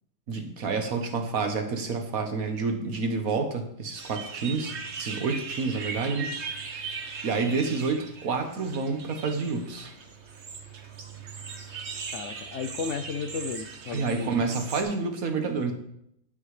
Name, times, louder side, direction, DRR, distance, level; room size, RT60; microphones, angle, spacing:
voice 1, 0.3-6.3 6.8-7.0 7.2-9.9 13.9-15.7, right 4 dB, 75° right, 5 dB, 1.6 m, -29 dB
sound 1, 3.9-14.8, right 5 dB, 55° right, 1.3 m, -39 dB
voice 2, 12.1-14.3, left 5 dB, 65° left, 10 dB, 0.8 m, -34 dB
16.0 x 5.7 x 3.2 m, 0.73 s
omnidirectional pair, 1.5 m